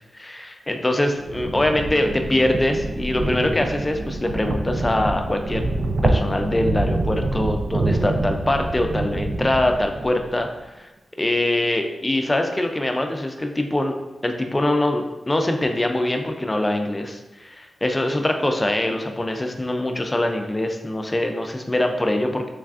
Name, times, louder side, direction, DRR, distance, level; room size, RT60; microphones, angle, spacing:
voice 1, 0.1-5.6 6.0-10.9 11.2-13.9 14.2-22.5, left 1 dB, 20° left, 4 dB, 0.3 m, -23 dB
sound 1, 1.1-10.4, right 2 dB, 60° right, 0.3 m, -26 dB
3.4 x 3.1 x 2.4 m, 1.1 s
wide cardioid pair, 110°, 0 cm